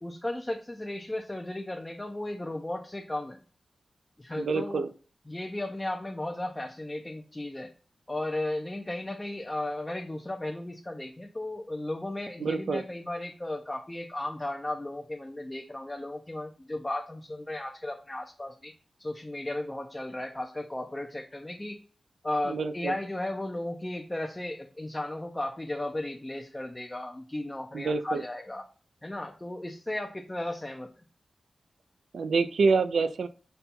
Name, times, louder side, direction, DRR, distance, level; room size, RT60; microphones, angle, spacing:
voice 1, 0.0-3.4 4.2-4.8 5.3-7.7 8.1-18.7 19.0-21.8 22.2-28.6 29.0-30.9, left 1 dB, 15° left, 3 dB, 0.4 m, -35 dB
voice 2, 4.4-4.9 12.4-12.8 22.4-23.0 27.7-28.2 32.1-33.3, right 4 dB, 90° right, 11 dB, 0.4 m, -27 dB
5.3 x 2.3 x 4.2 m, 0.39 s
wide cardioid pair, 150°, 0 cm